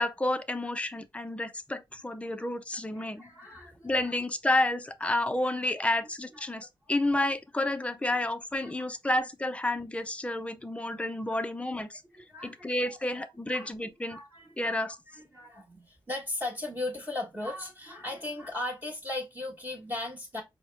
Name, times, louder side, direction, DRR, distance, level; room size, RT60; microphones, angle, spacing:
voice 1, 0.0-3.6 3.8-12.0 12.4-14.2 14.6-15.0, left 1 dB, 15° left, 0.5 m, -30 dB
voice 2, 2.9-4.1 6.3-6.7 8.6-8.7 9.0-9.1 11.3-11.4 12.2-13.7 14.1-20.4, left 2 dB, 20° right, 1.4 m, -38 dB
4.7 x 2.1 x 3.2 m
wide cardioid pair, 110°, 9 cm